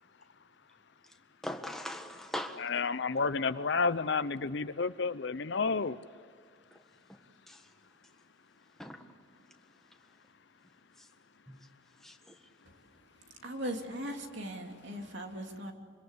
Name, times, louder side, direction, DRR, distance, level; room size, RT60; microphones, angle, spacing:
voice 1, 1.4-2.6 6.7-6.8 7.5-7.6 8.8-9.0 11.0-11.1 12.0-12.3, left 1 dB, ahead, 1.5 m, -40 dB
voice 2, 2.6-6.0, left 4 dB, 55° left, 0.6 m, -30 dB
voice 3, 13.2-15.7, right 1 dB, 60° right, 3.0 m, -39 dB
25.5 x 25.0 x 8.3 m
head